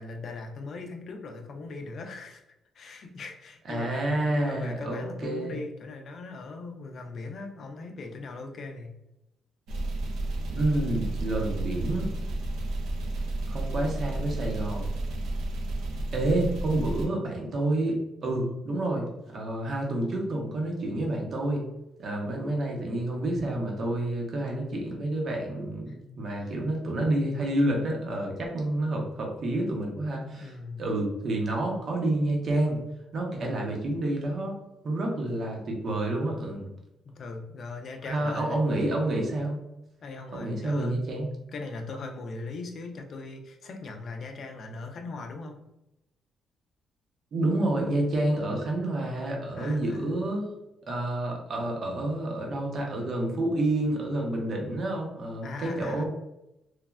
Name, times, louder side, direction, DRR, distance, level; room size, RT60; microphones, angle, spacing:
voice 1, 0.0-2.4 2.7-8.9 25.9-26.0 26.4-26.6 30.4-30.9 37.0-38.7 40.0-40.9 41.5-45.6 49.5-50.1 55.4-56.0, left 3 dB, 55° left, 4 dB, 0.4 m, -39 dB
voice 2, 3.7-5.6 10.5-12.1 13.5-14.9 16.1-19.1 19.3-21.6 22.0-32.8 33.1-34.6 34.8-36.7 38.0-39.7 40.3-41.3 47.3-50.5 50.9-56.0, right 1 dB, 55° right, 0 dB, 0.7 m, -29 dB
sound 1, 9.7-17.1, right 2 dB, 85° right, 0.4 m, -32 dB
3.2 x 2.1 x 2.3 m, 0.89 s
cardioid pair, 90°, 0 cm